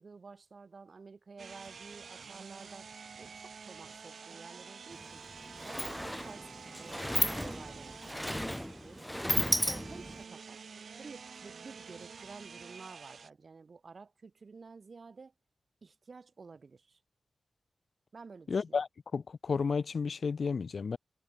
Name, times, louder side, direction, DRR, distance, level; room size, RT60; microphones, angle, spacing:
voice 1, 0.0-5.2 5.6-6.5 6.8-9.1 9.5-10.6 11.0-15.3 15.8-17.0 18.1-18.8, right 4 dB, 55° right, 3.4 m, -51 dB
sound 1, 1.4-13.3, right 5 dB, 80° right, 1.2 m, -49 dB
Sliding door, 4.9-5.0 5.3-10.2, equal, 5° left, 1.0 m, -34 dB
voice 2, 18.5-21.0, left 5 dB, 70° left, 0.7 m, -32 dB
wide cardioid pair, 105°, 0 cm